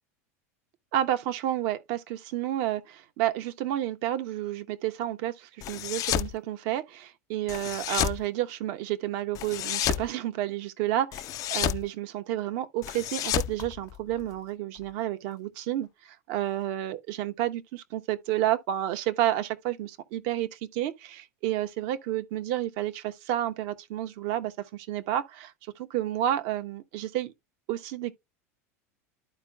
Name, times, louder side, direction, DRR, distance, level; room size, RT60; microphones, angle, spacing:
voice 1, 0.9-11.2 11.5-27.3 27.7-28.1, right 13 dB, 60° right, 1.0 m, -30 dB
sound 1, 5.6-6.3 7.5-8.2 9.3-10.1 11.1-11.8 12.8-14.3, left 13 dB, 45° left, 0.5 m, -30 dB
12.5 x 4.5 x 2.3 m
hypercardioid pair, 95°, 8 cm